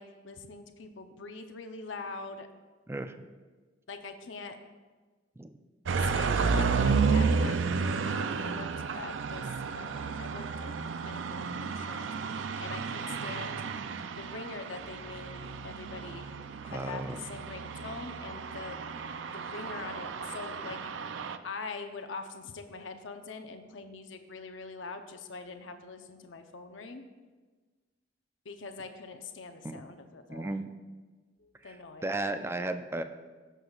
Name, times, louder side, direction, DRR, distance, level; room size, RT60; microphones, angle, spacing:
voice 1, 0.0-2.5 3.9-4.6 6.0-8.7 8.9-9.5 9.8-13.6 14.1-16.3 16.6-18.8 19.3-20.8 21.4-27.0 28.4-30.6 31.4-32.1, left 4 dB, 80° left, 7 dB, 0.7 m, -43 dB
sound 1, 5.9-21.4, right 5 dB, 75° right, 0.4 m, -32 dB
voice 2, 16.7-17.2 29.6-29.8 30.3-30.7 31.6-31.8 32.0-33.0, right 2 dB, 15° right, 9 dB, 0.4 m, -34 dB
15.5 x 6.9 x 2.4 m, 1.3 s
head